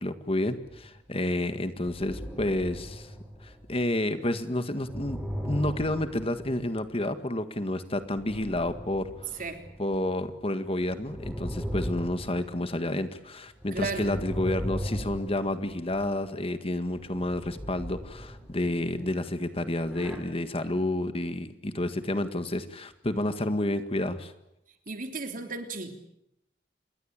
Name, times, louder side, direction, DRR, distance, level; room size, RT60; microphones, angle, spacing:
voice 1, 0.0-3.1 3.4-9.4 9.8-24.3, left 1 dB, 30° left, 10 dB, 1.8 m, -30 dB
sound 1, 0.6-1.0 1.7-4.0 4.6-7.0 8.0-10.1 10.6-13.0 13.5-16.2 16.9-19.2 19.7-20.2, equal, ahead, 5.9 m, -38 dB
voice 2, 13.7-14.1 24.9-25.9, right 3 dB, 50° right, 6 dB, 3.4 m, -34 dB
28.0 x 22.5 x 9.0 m, 0.83 s
head